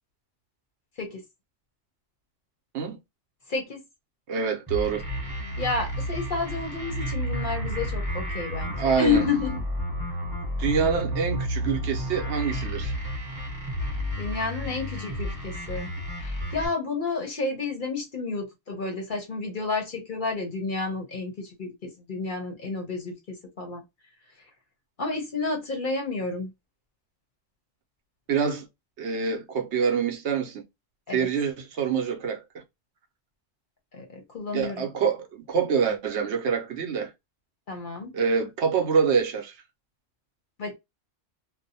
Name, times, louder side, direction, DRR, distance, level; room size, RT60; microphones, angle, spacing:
voice 1, 3.5-3.8 5.6-9.6 14.2-15.9 16.2-23.8 25.0-26.5 31.1-31.3 33.9-34.9 37.7-38.1 40.6-40.7, left 4 dB, 50° left, 0.7 m, -30 dB
voice 2, 4.3-5.0 8.8-9.2 10.6-12.9 28.3-28.7 29.0-30.6 31.1-32.6 34.5-37.1 38.1-39.6, right 6 dB, 70° right, 0.9 m, -26 dB
sound 1, 4.7-16.7, equal, 15° right, 0.9 m, -31 dB
2.5 x 2.0 x 2.6 m
omnidirectional pair, 1.3 m